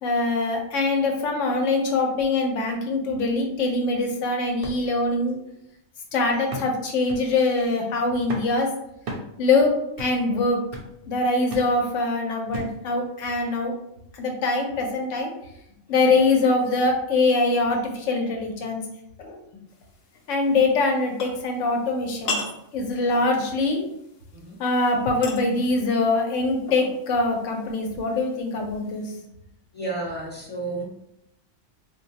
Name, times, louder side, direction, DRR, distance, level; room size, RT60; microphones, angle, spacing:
voice 1, 0.0-5.4 6.1-8.7 9.4-10.6 11.1-13.7 14.1-15.3 15.9-18.8 19.2-19.4 20.3-22.4 22.7-23.8 24.6-29.1, left 3 dB, 80° left, 2 dB, 1.0 m, -23 dB
sound 1, 4.6-4.8 5.3-5.4 6.5-6.8 7.1-7.3 8.3-8.6 9.1-9.3 10.0-10.2 10.7-10.9 11.5-11.7 12.5-12.8 13.5-13.6, right 1 dB, 60° right, 0.6 m, -35 dB
sound 2, 19.7-29.2, left 3 dB, 65° left, 0.7 m, -40 dB
voice 2, 29.7-30.8, right 2 dB, 10° left, -5 dB, 0.8 m, -33 dB
3.8 x 2.2 x 2.7 m, 0.79 s
omnidirectional pair, 1.3 m